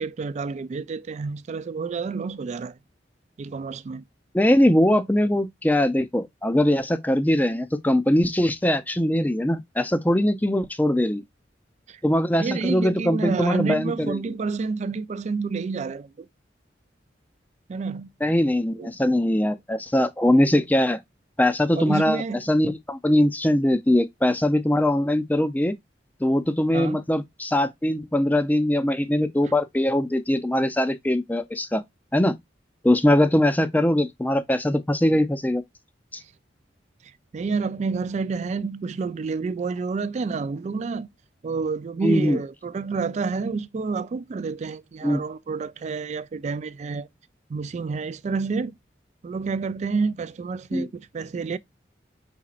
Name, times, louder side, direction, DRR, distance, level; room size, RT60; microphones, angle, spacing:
voice 1, 0.0-2.8 3.4-4.0 11.9-12.0 12.4-16.3 17.7-18.1 18.8-18.9 21.7-22.4 26.7-27.0 29.4-29.5 37.0-41.1 41.4-47.1 47.5-48.7 49.2-51.6, right 4 dB, 40° right, 0.3 m, -29 dB
voice 2, 4.3-11.2 12.0-14.2 18.2-21.0 21.4-22.2 22.5-25.7 26.2-31.8 32.1-32.4 32.8-35.6 42.0-42.4 45.0-45.2 50.7-50.9, left 1 dB, 10° left, 0.5 m, -21 dB
4.9 x 4.3 x 2.4 m
head